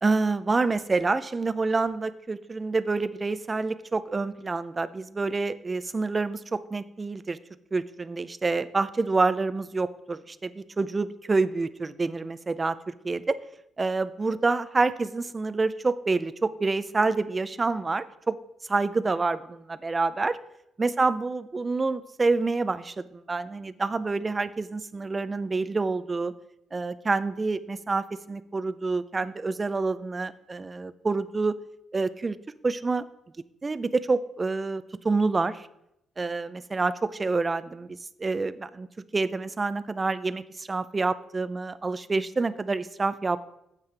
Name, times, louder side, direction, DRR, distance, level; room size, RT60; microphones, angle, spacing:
voice 1, 0.0-7.4 7.7-13.4 13.8-18.4 18.7-20.4 20.8-26.3 26.7-31.5 31.9-32.4 32.6-33.1 33.6-35.7 36.2-38.9 39.1-43.4, right 3 dB, 25° right, 14 dB, 0.4 m, -27 dB
9.3 x 7.4 x 3.3 m, 0.83 s
cardioid pair, 90°, 0 cm